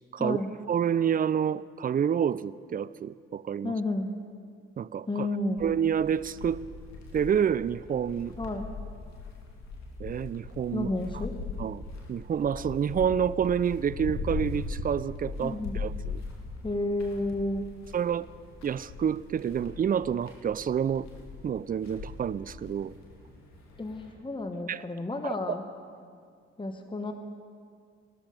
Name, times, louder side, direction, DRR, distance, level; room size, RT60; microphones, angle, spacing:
voice 1, 0.1-0.5 3.6-4.1 5.1-5.6 8.4-8.7 10.7-11.3 15.4-15.8 16.6-17.7 23.8-25.6 26.6-27.1, left 2 dB, 15° left, 6 dB, 1.2 m, -31 dB
voice 2, 0.7-3.7 4.8-5.3 5.6-6.6 7.1-8.3 10.0-10.9 11.6-11.8 12.1-16.2 17.9-18.3 18.6-21.1 21.4-22.9 24.7-24.8 25.2-25.3, right 8 dB, 30° right, 18 dB, 0.4 m, -28 dB
sound 1, 5.6-24.1, left 4 dB, 60° left, 2.3 m, -40 dB
17.5 x 13.0 x 5.1 m, 2.2 s
hypercardioid pair, 40°, 31 cm